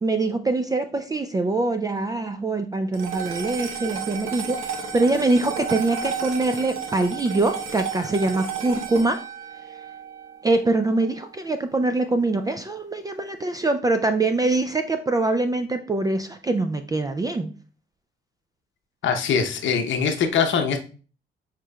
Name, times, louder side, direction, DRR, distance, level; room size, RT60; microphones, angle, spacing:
voice 1, 0.0-4.6 4.9-9.2 10.4-17.5, right 2 dB, 20° right, 7 dB, 0.4 m, -23 dB
sound 1, 2.9-11.4, right 6 dB, 80° right, 0.8 m, -33 dB
voice 2, 19.0-20.8, left 6 dB, 70° left, 6 dB, 0.8 m, -22 dB
6.5 x 3.0 x 2.3 m, 0.36 s
cardioid pair, 90°, 20 cm